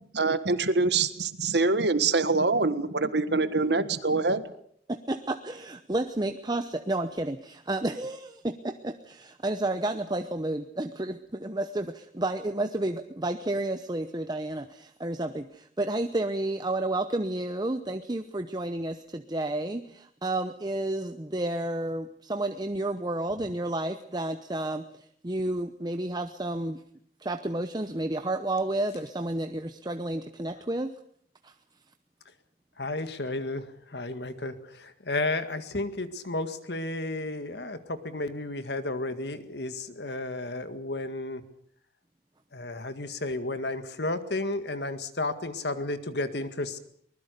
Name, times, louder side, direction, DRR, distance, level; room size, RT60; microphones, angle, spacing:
voice 1, 0.1-4.4, right 3 dB, 70° right, 12 dB, 1.5 m, -25 dB
voice 2, 4.9-26.8 27.2-30.9 31.4-31.5, right 2 dB, 25° right, 8 dB, 0.8 m, -31 dB
voice 3, 32.8-41.4 42.5-46.8, left 2 dB, 65° left, 10 dB, 1.9 m, -32 dB
24.0 x 20.5 x 6.8 m, 0.65 s
head